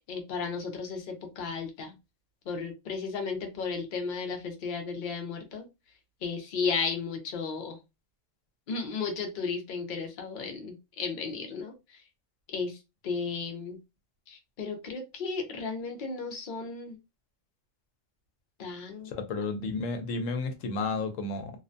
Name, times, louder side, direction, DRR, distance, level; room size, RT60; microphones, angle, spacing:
voice 1, 0.1-2.0 2.5-5.7 6.2-7.8 8.7-12.0 12.5-12.8 13.0-13.8 14.3-17.0 18.6-19.1, left 5 dB, 50° left, 0.6 m, -34 dB
voice 2, 19.1-21.5, left 3 dB, 80° left, 1.0 m, -32 dB
2.5 x 2.1 x 2.5 m
omnidirectional pair, 1.3 m